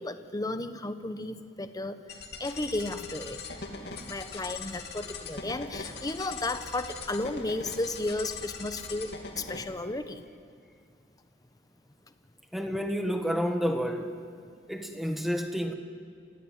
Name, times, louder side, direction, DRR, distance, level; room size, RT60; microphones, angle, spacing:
voice 1, 0.0-2.0 2.4-3.4 4.0-10.2, left 2 dB, 20° left, 10 dB, 1.0 m, -34 dB
sound 1, 2.1-9.6, left 4 dB, 60° left, 2.8 m, -41 dB
voice 2, 12.5-14.2 14.7-15.7, equal, ahead, 5 dB, 1.5 m, -30 dB
28.5 x 15.5 x 9.0 m, 2.4 s
head